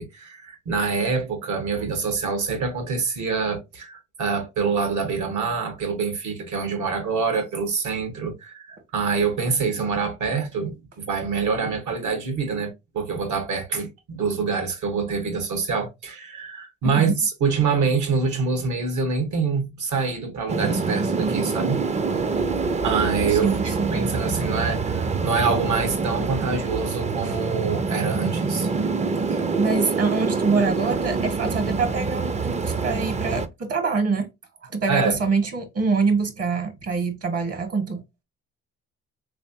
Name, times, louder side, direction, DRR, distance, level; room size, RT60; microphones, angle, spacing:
voice 1, 0.0-21.8 22.8-28.7 34.9-35.2, right 5 dB, 75° right, 1.5 m, -26 dB
voice 2, 16.8-17.1 23.3-23.9 29.3-34.3 34.6-38.0, right 4 dB, 55° right, 1.3 m, -25 dB
sound 1, 20.5-33.5, right 4 dB, 25° right, 0.4 m, -25 dB
3.5 x 3.3 x 2.7 m
cardioid pair, 90°, 30 cm